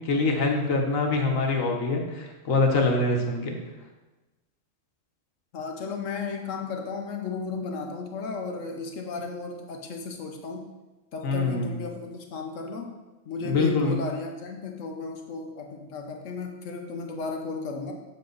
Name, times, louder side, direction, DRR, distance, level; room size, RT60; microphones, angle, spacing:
voice 1, 0.0-3.6 11.2-11.8 13.4-14.0, left 3 dB, 90° left, 2 dB, 1.6 m, -24 dB
voice 2, 5.5-10.6 11.1-12.9 13.3-17.9, left 4 dB, 75° left, 3 dB, 1.2 m, -34 dB
7.6 x 6.6 x 4.0 m, 1.1 s
omnidirectional pair, 1.3 m